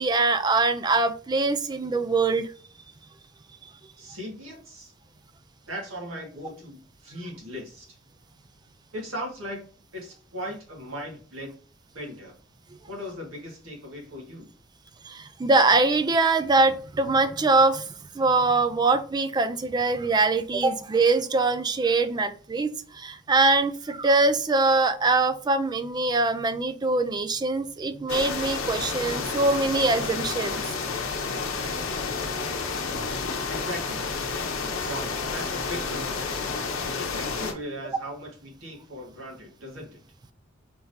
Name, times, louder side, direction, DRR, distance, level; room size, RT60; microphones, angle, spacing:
voice 1, 0.0-2.5 15.0-30.6, right 3 dB, 20° right, 11 dB, 0.3 m, -23 dB
voice 2, 4.0-4.9 5.7-8.0 8.9-9.7 9.9-11.5 11.9-12.3 12.9-14.5 33.5-34.1 34.8-36.2 37.0-40.0, equal, 80° right, -2 dB, 1.9 m, -38 dB
sound 1, 28.1-37.5, left 4 dB, 80° left, 0.8 m, -30 dB
4.5 x 3.6 x 2.7 m, 0.42 s
head